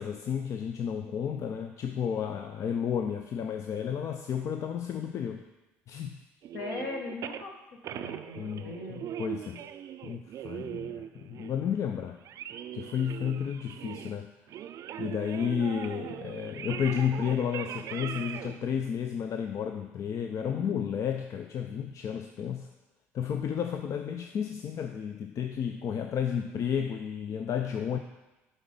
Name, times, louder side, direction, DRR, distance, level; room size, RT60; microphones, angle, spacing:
voice 1, 0.0-5.4 5.9-6.2 8.4-9.7 10.0-12.2 12.7-14.3 15.0-22.7 23.1-28.0, left 8 dB, 50° left, 6 dB, 0.5 m, -32 dB
sound 1, 6.4-7.4 7.8-14.2 14.5-18.6, right 10 dB, 55° right, 0.4 m, -40 dB
voice 2, 6.5-7.5 7.9-9.1 20.5-20.9, left 3 dB, 70° left, 0 dB, 1.5 m, -39 dB
7.3 x 4.1 x 5.4 m, 1.1 s
hypercardioid pair, 65°, 7 cm